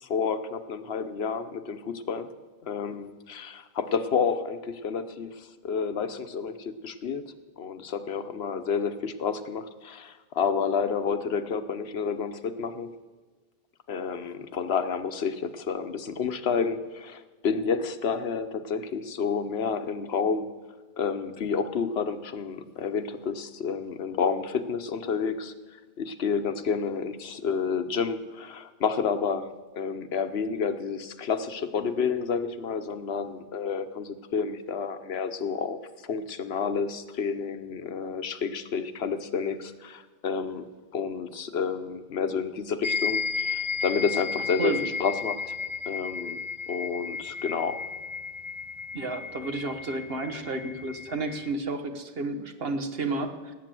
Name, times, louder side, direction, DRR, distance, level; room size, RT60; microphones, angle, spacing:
voice 1, 0.0-2.3 2.6-7.2 7.6-12.9 13.9-20.5 21.0-25.5 26.0-29.5 29.7-40.7 40.9-45.5 45.9-46.4 46.7-47.8, left 6 dB, 80° left, 10 dB, 1.1 m, -30 dB
sound 1, 42.8-51.5, left 5 dB, 35° left, 0.5 m, -33 dB
voice 2, 48.9-53.5, right 3 dB, 70° right, 7 dB, 1.5 m, -31 dB
18.5 x 8.6 x 7.6 m, 1.4 s
omnidirectional pair, 1.0 m